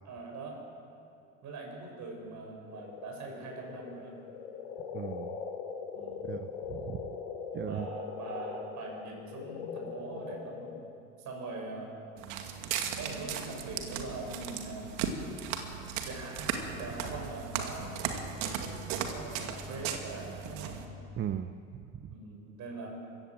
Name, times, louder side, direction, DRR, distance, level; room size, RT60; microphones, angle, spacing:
voice 1, 0.0-0.6 1.4-4.1 5.9-6.3 7.6-10.8 11.2-11.9 13.0-15.0 16.0-18.0 18.4-20.8 22.1-22.9, right 3 dB, 45° right, 1 dB, 7.5 m, -42 dB
sound 1, 2.7-10.8, left 6 dB, 65° left, 3.7 m, -41 dB
voice 2, 4.9-5.4 6.2-7.1 7.5-7.9 21.2-22.1, right 9 dB, 30° right, 10 dB, 0.8 m, -38 dB
Walk footsteps, 12.2-20.9, right 7 dB, 60° right, 2.3 m, -37 dB
24.5 x 15.5 x 7.7 m, 2.6 s
hypercardioid pair, 75°, 40 cm